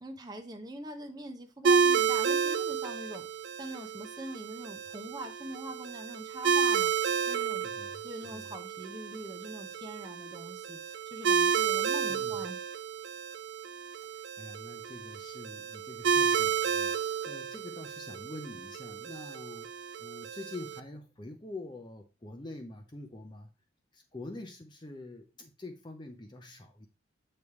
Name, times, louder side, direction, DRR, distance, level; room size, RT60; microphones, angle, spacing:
voice 1, 0.0-6.9 7.2-7.7 8.0-12.6, right 1 dB, 20° right, 0.6 m, -43 dB
sound 1, 1.6-20.8, right 6 dB, 60° right, 0.4 m, -31 dB
voice 2, 7.6-8.5 12.1-12.5 14.0-19.7 20.0-23.5 23.9-26.9, left 2 dB, 20° left, 0.6 m, -46 dB
7.0 x 3.3 x 4.6 m
head